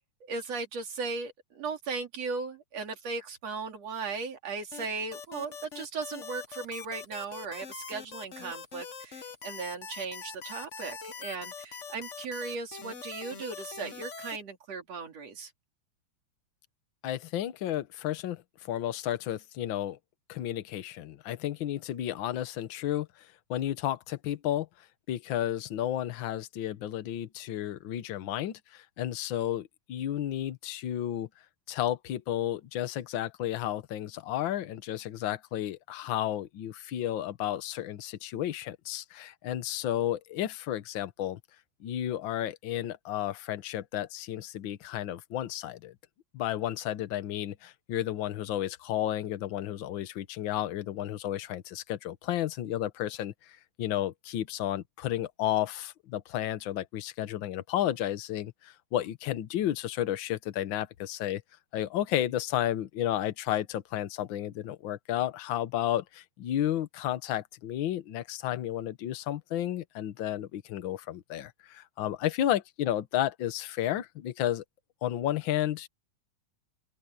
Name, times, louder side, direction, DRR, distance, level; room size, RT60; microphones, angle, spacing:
voice 1, 0.2-15.5, right 4 dB, 60° right, 3.8 m, -37 dB
sound 1, 4.7-14.4, left 5 dB, 45° left, 0.9 m, -43 dB
voice 2, 17.0-20.0 20.3-24.7 25.1-31.3 31.7-41.4 41.8-45.9 46.3-61.4 61.7-74.6 75.0-75.9, left 12 dB, 65° left, 1.2 m, -32 dB
open air
omnidirectional pair, 3.3 m